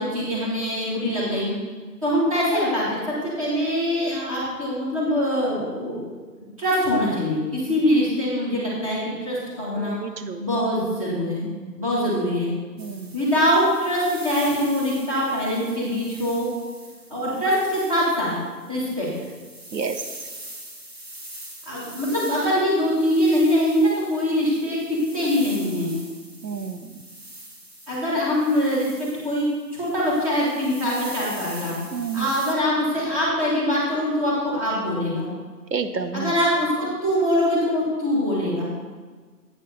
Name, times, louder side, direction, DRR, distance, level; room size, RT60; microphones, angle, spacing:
voice 1, 0.0-1.5 2.0-6.0 6.4-10.0 10.4-11.4 11.8-12.5 13.1-16.5 17.1-18.3 18.7-19.1 21.7-25.9 27.9-31.7 32.1-35.3 36.1-38.7, equal, 20° right, -8 dB, 2.1 m, -23 dB
voice 2, 9.7-10.4 11.4-11.8 12.8-13.2 19.7-20.0 26.4-26.9 31.9-32.3 35.7-36.3, right 6 dB, 85° right, 9 dB, 1.0 m, -30 dB
sound 1, 12.8-32.5, right 1 dB, 40° right, 1.1 m, -42 dB
8.5 x 7.5 x 4.0 m, 1.4 s
hypercardioid pair, 180°, 49 cm